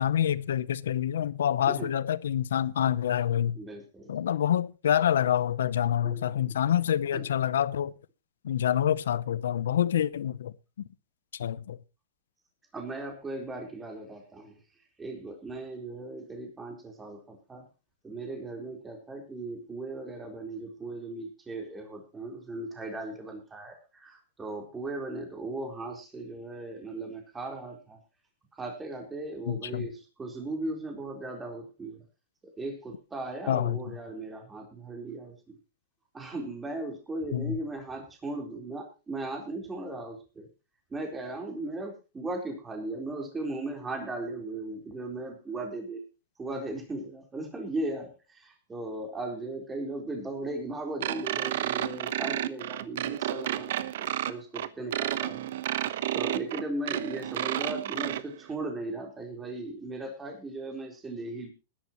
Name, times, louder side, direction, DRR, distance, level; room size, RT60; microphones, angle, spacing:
voice 1, 0.0-3.6 4.1-7.9 8.4-10.5 11.4-11.8 29.5-29.8 33.5-33.8 37.3-37.6, left 10 dB, 90° left, 0.8 m, -27 dB
voice 2, 3.5-4.1 6.0-6.3 7.1-7.2 12.7-14.6 15.0-17.6 18.0-28.0 28.6-32.0 32.4-35.6 36.1-40.5 40.9-46.0 46.4-61.5, right 2 dB, 15° right, 4.2 m, -37 dB
sound 1, 51.0-58.2, right 12 dB, 70° right, 1.1 m, -31 dB
20.5 x 11.5 x 3.1 m
supercardioid pair, 145°, 0 cm